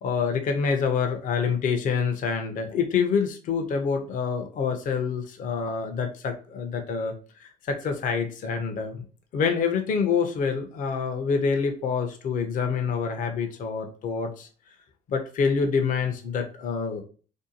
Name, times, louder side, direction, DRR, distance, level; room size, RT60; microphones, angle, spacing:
voice 1, 0.0-7.1 7.4-9.0 9.3-14.5 15.1-17.0, left 5 dB, 50° left, 5 dB, 0.5 m, -26 dB
2.6 x 2.2 x 2.7 m, 0.38 s
cardioid pair, 110°, 17 cm